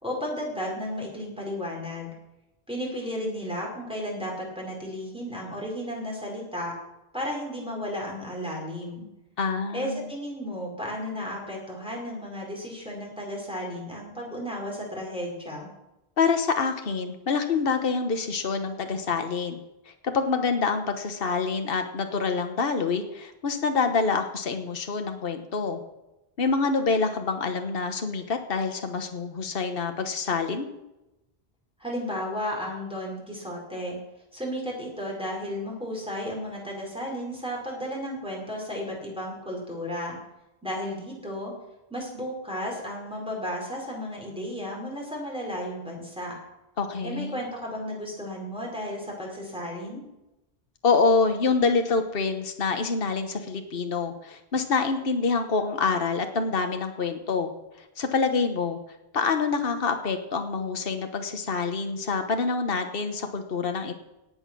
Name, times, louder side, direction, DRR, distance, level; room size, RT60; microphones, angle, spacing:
voice 1, 0.0-2.1 2.7-6.7 7.1-9.0 9.7-15.7 31.8-34.0 34.3-40.2 40.6-41.5 41.9-46.3 47.0-50.0, equal, 5° right, -2 dB, 4.7 m, -33 dB
voice 2, 9.4-10.1 16.2-19.6 20.0-25.8 26.4-30.7 46.8-47.4 50.8-57.5 57.8-58.8 59.1-63.9, left 4 dB, 65° left, 6 dB, 1.4 m, -26 dB
17.5 x 8.8 x 6.2 m, 0.93 s
omnidirectional pair, 1.0 m